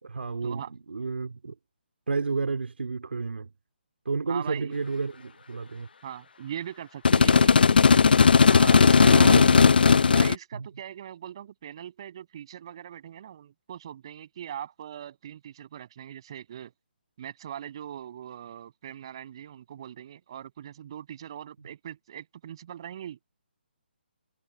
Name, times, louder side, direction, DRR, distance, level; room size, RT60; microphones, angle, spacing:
voice 1, 0.0-1.5 2.1-3.5 4.0-5.9 9.1-9.4 10.5-10.7, right 4 dB, 80° right, 3.3 m, -31 dB
voice 2, 4.3-4.7 6.0-7.9 8.4-16.7 17.2-23.2, right 10 dB, 25° right, 7.2 m, -40 dB
sound 1, 7.1-10.4, left 5 dB, 60° left, 0.6 m, -17 dB
hypercardioid pair, 175°, 6 cm